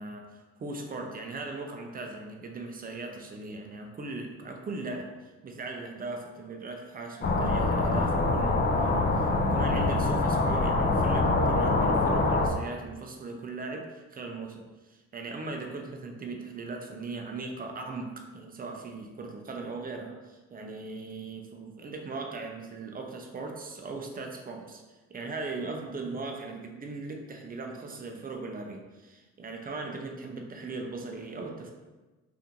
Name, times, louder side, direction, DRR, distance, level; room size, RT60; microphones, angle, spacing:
voice 1, 0.0-5.1 5.4-31.7, right 3 dB, 30° right, 3 dB, 0.5 m, -39 dB
sound 1, 7.2-12.5, left 2 dB, 35° left, 0.4 m, -25 dB
2.8 x 2.6 x 3.6 m, 1.2 s
cardioid pair, 90°, 30 cm